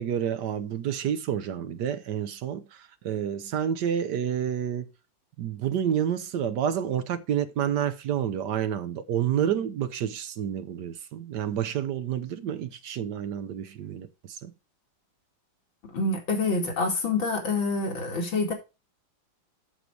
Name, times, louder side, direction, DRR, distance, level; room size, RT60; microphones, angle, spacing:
voice 1, 0.0-4.9 5.4-14.5, right 9 dB, 70° right, 1.3 m, -29 dB
voice 2, 15.9-18.5, left 3 dB, 85° left, 3.1 m, -27 dB
8.1 x 6.6 x 4.7 m
omnidirectional pair, 2.1 m